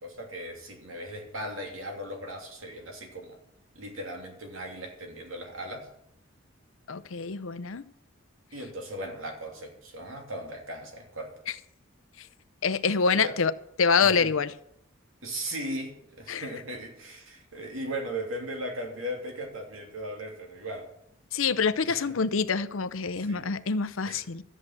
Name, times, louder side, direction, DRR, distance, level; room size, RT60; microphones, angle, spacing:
voice 1, 0.0-3.4 3.7-5.9 8.5-11.3 13.2-13.4 14.0-14.3 15.2-20.9 21.8-22.0 23.2-23.5 24.1-24.2, right 1 dB, 90° right, 3.0 m, -37 dB
voice 2, 6.9-7.8 12.2-12.3 12.6-13.5 13.8-14.5 16.3-16.5 21.3-24.4, left 5 dB, 80° left, 0.7 m, -26 dB
13.0 x 7.6 x 7.6 m
head